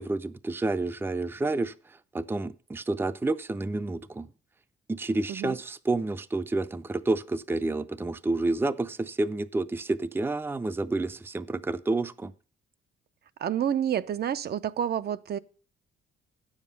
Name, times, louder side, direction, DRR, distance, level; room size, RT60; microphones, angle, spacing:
voice 1, 0.0-4.3 4.9-12.3, right 2 dB, 10° right, 0.5 m, -29 dB
voice 2, 13.4-15.4, right 9 dB, 55° right, 0.6 m, -29 dB
9.2 x 7.3 x 5.3 m
cardioid pair, 90°, 20 cm